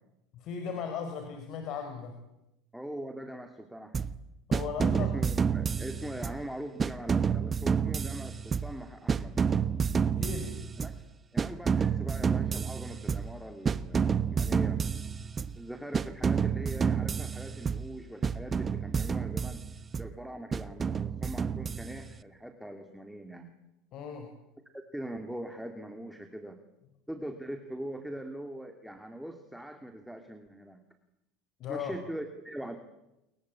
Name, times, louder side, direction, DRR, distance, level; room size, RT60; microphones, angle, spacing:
voice 1, 0.3-2.2 4.5-5.1 10.0-10.6 23.9-24.3 31.6-31.9, left 6 dB, 55° left, 6 dB, 4.9 m, -37 dB
voice 2, 2.7-4.1 4.9-9.4 10.8-10.9 11.3-14.8 15.6-23.5 24.7-26.6 27.1-30.8 31.7-32.8, right 1 dB, ahead, 5 dB, 2.6 m, -42 dB
sound 1, 3.9-4.2 4.5-6.5 6.8-8.8 9.1-11.0 11.4-13.4 13.7-15.6 15.9-17.9 18.2-20.1 20.5-22.2, right 6 dB, 25° right, 1.1 m, -29 dB
29.0 x 22.5 x 8.6 m, 0.92 s
supercardioid pair, 100°, 0 cm